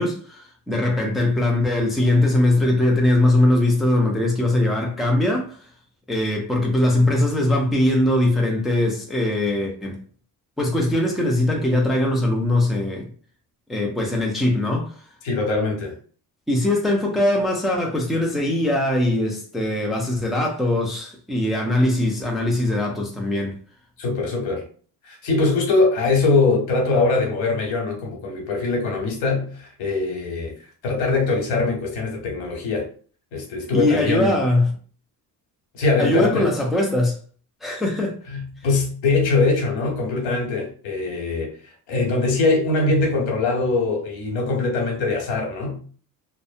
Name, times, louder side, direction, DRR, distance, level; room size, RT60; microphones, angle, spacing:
voice 1, 0.0-5.6 6.1-10.0 10.6-13.1 13.7-14.9 16.5-23.6 33.7-34.7 36.0-37.2 37.6-38.2, left 1 dB, ahead, 0.4 m, -21 dB
voice 2, 15.2-15.9 24.0-24.6 25.0-30.5 30.8-32.9 33.3-34.4 35.7-36.5 38.3-41.5 41.9-45.8, left 3 dB, 90° left, 1.1 m, -22 dB
2.6 x 2.1 x 2.5 m
cardioid pair, 140°, 37 cm